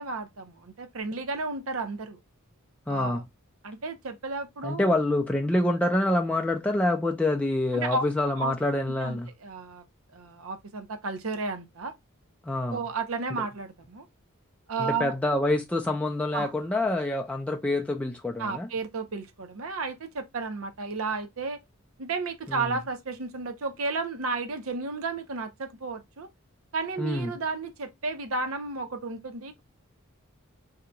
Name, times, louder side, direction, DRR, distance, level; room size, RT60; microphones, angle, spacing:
voice 1, 0.0-2.2 2.9-3.2 3.6-5.0 7.7-8.0 8.3-8.5 9.0-9.8 10.1-11.9 12.7-14.0 14.7-15.1 16.3-16.5 18.4-21.6 22.0-26.3 26.7-29.6, right 3 dB, 80° right, 0.7 m, -33 dB
voice 2, 2.9-3.2 4.6-9.3 12.4-12.8 14.8-18.7 22.5-22.7 27.0-27.3, left 1 dB, 5° left, 0.3 m, -26 dB
2.8 x 2.3 x 3.7 m
head